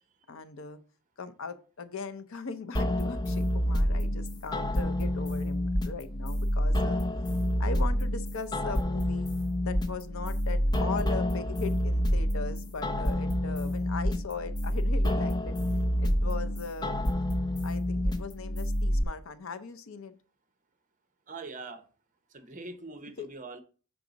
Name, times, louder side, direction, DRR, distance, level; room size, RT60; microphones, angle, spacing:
voice 1, 0.3-0.8 1.2-7.0 7.6-9.3 9.6-15.6 16.0-16.9 17.6-20.2 23.2-23.3, left 4 dB, 65° left, 12 dB, 0.6 m, -39 dB
sound 1, 2.7-19.0, equal, 20° left, 0.4 m, -28 dB
voice 2, 21.3-21.8 22.3-23.6, right 3 dB, 35° right, 9 dB, 0.7 m, -42 dB
6.1 x 4.8 x 3.9 m, 0.38 s
head